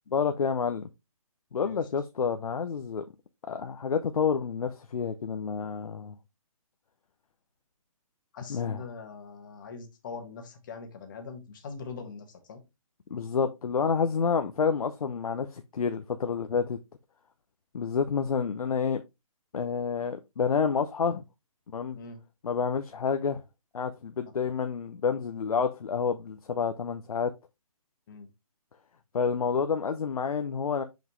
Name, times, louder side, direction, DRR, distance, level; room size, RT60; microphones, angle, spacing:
voice 1, 0.1-0.9 1.5-3.0 3.5-6.1 8.5-8.8 13.1-16.8 17.7-19.0 19.5-21.2 21.7-22.0 22.4-23.4 23.7-27.3 29.1-30.8, left 6 dB, 80° left, 0.8 m, -29 dB
voice 2, 8.3-12.6 22.0-22.2 28.1-28.3, left 4 dB, 35° left, 1.6 m, -42 dB
6.0 x 5.2 x 3.1 m
hypercardioid pair, 165°, 18 cm